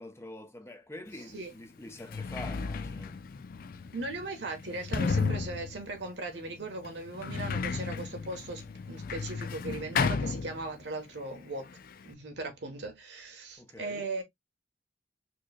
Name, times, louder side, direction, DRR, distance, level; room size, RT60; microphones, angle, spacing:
voice 1, 0.0-3.2 13.6-14.1, left 1 dB, 15° left, 0.7 m, -45 dB
Sliding door, 1.2-1.3 1.9-11.1 11.3-12.1, left 5 dB, 55° left, 0.4 m, -34 dB
voice 2, 3.9-11.7 12.0-14.2, right 2 dB, 75° right, 1.1 m, -38 dB
4.5 x 3.0 x 2.2 m
head